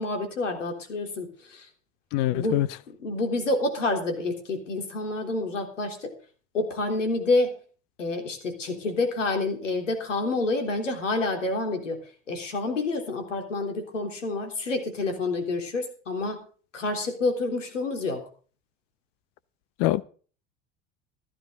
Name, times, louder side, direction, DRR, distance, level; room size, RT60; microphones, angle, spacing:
voice 1, 0.0-1.7 2.3-2.6 2.9-6.1 6.5-7.5 8.0-12.0 12.3-16.4 16.7-18.2, left 2 dB, 90° left, 3.6 m, -28 dB
voice 2, 2.1-2.7 19.8-20.0, left 15 dB, 60° left, 0.8 m, -23 dB
15.0 x 12.5 x 4.0 m
hypercardioid pair, 75°, 36 cm